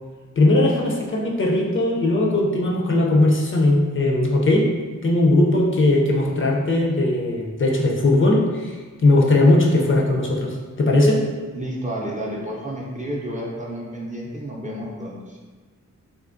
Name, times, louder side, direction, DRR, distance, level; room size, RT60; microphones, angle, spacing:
voice 1, 0.4-4.7 5.0-11.3, left 2 dB, 40° left, -1 dB, 0.5 m, -19 dB
voice 2, 11.5-15.4, equal, 25° right, -3 dB, 0.5 m, -31 dB
3.5 x 2.7 x 2.5 m, 1.4 s
wide cardioid pair, 115°, 31 cm